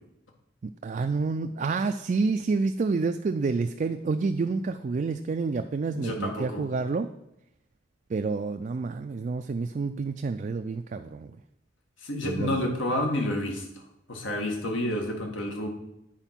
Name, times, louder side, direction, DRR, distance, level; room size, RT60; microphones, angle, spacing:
voice 1, 0.8-7.1 8.1-11.3 12.2-12.7, right 4 dB, 40° right, 6 dB, 0.3 m, -28 dB
voice 2, 5.9-6.6 12.0-13.8 14.1-15.7, left 1 dB, 80° left, 2 dB, 1.6 m, -29 dB
9.0 x 4.4 x 5.8 m, 0.83 s
head